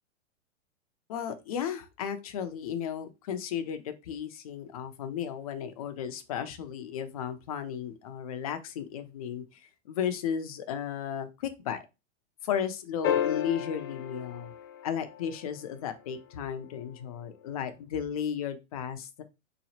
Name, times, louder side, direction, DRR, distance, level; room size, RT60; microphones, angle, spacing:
voice 1, 1.1-11.8 12.4-14.5 14.8-19.2, left 8 dB, 30° left, 9 dB, 0.4 m, -34 dB
sound 1, 13.0-15.6 17.8-17.9, left 10 dB, 80° left, 0.9 m, -32 dB
3.9 x 2.9 x 2.7 m, 0.26 s
hypercardioid pair, 145°, 38 cm